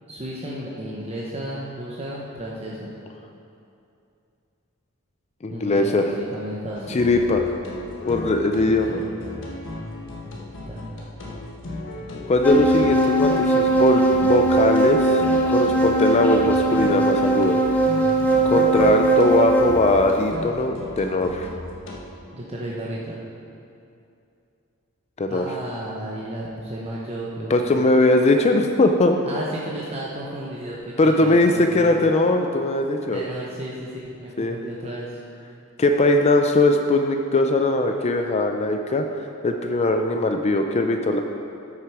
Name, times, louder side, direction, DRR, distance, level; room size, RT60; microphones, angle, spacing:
voice 1, 0.1-2.9 5.5-7.0 8.6-9.0 10.6-10.9 22.3-23.2 25.3-27.7 29.2-32.0 33.1-35.2, right 1 dB, 30° right, -5 dB, 0.9 m, -33 dB
voice 2, 5.4-6.1 6.9-7.5 8.1-9.0 12.3-15.2 15.5-17.6 18.4-21.5 25.2-25.5 27.5-29.2 31.0-33.2 34.4-34.6 35.8-41.2, left 2 dB, 30° left, 5 dB, 0.4 m, -20 dB
sound 1, 6.8-22.0, left 1 dB, 60° left, 1.4 m, -35 dB
sound 2, 12.4-19.9, right 2 dB, 10° left, 0.9 m, -19 dB
13.0 x 6.5 x 4.8 m, 2.6 s
head